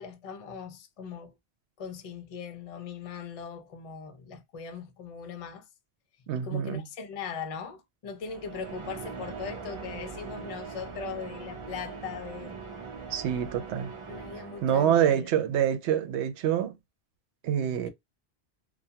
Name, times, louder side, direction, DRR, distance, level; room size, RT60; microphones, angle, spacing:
voice 1, 0.0-1.3 1.8-5.7 6.3-12.6 14.1-15.3, left 6 dB, 45° left, 0.5 m, -40 dB
voice 2, 6.3-6.8 13.1-13.9 14.6-16.8 17.4-17.9, right 9 dB, 85° right, 0.9 m, -26 dB
sound 1, 8.2-15.1, right 5 dB, 40° right, 0.5 m, -41 dB
2.3 x 2.1 x 2.7 m
omnidirectional pair, 1.1 m